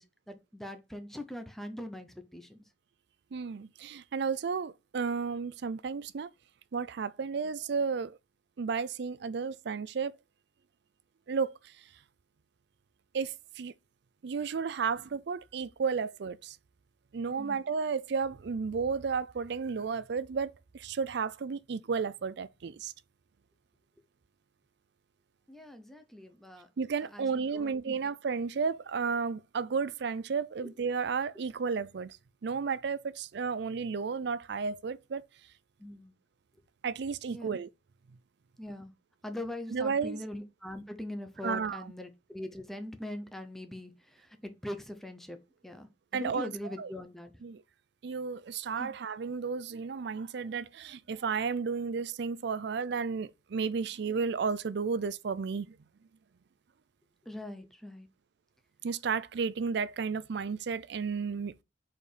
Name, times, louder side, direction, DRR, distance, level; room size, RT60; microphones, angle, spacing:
voice 1, 0.0-2.6 17.4-17.6 25.5-26.7 27.1-28.0 30.6-30.7 35.8-36.1 37.3-37.6 38.6-38.9 39.2-45.4 45.6-47.3 48.8-48.9 57.3-58.1, left 1 dB, ahead, 0.9 m, -42 dB
voice 2, 3.3-6.3 6.7-8.2 8.6-10.1 11.3-11.6 13.1-13.7 14.2-16.6 17.1-22.9 26.8-32.2 32.4-35.2 36.8-37.7 39.7-40.2 41.4-41.8 46.1-46.5 46.8-46.9 47.4-47.6 48.0-55.8 58.8-61.6, right 5 dB, 65° right, 0.4 m, -33 dB
4.9 x 4.4 x 5.1 m
head